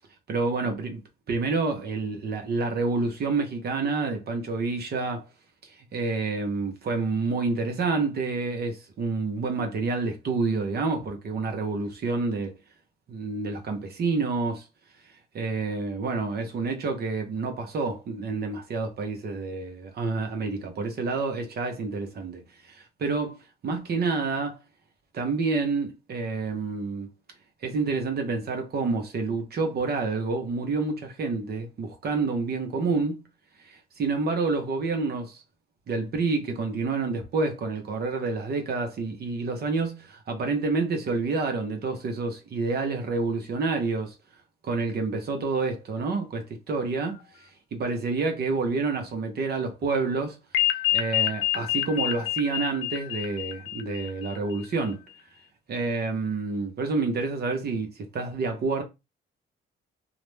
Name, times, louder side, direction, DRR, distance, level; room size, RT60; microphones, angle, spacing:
voice 1, 0.3-1.0 1.3-5.3 5.6-12.6 13.1-14.7 15.0-23.4 23.6-24.6 25.1-27.1 27.6-33.2 33.6-35.4 35.9-44.2 44.6-50.4 50.9-55.0 55.7-58.8, right 3 dB, 55° right, 0.7 m, -28 dB
sound 1, 50.5-54.6, left 14 dB, 75° left, 0.4 m, -27 dB
2.4 x 2.1 x 3.1 m
cardioid pair, 90°, 20 cm